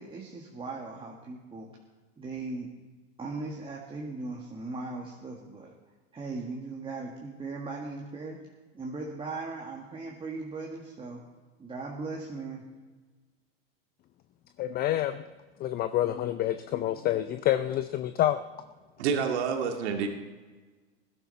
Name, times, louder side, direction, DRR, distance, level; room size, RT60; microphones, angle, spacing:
voice 1, 0.0-1.7 2.2-2.7 3.2-5.7 6.1-8.4 8.7-11.2 11.6-12.6, right 3 dB, 15° right, -2 dB, 1.8 m, -38 dB
voice 2, 14.6-15.2 15.6-18.4, left 13 dB, 25° left, 11 dB, 0.5 m, -27 dB
voice 3, 19.0-20.1, right 6 dB, 70° right, 3 dB, 2.1 m, -28 dB
20.5 x 12.0 x 4.2 m, 1.3 s
hypercardioid pair, 115°, 34 cm